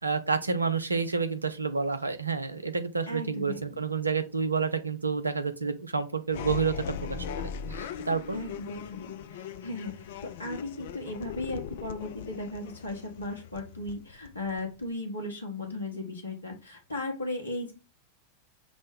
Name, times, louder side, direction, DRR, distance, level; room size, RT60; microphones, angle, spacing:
voice 1, 0.0-6.7 7.1-7.3 7.7-8.4, right 5 dB, 80° right, 10 dB, 0.5 m, -29 dB
voice 2, 3.1-3.8 8.3-17.7, left 2 dB, 80° left, 2 dB, 1.1 m, -36 dB
sound 1, 6.3-14.9, left 8 dB, 55° left, 0.3 m, -39 dB
6.0 x 2.1 x 3.6 m, 0.30 s
figure-of-eight pair, 90°, 0 cm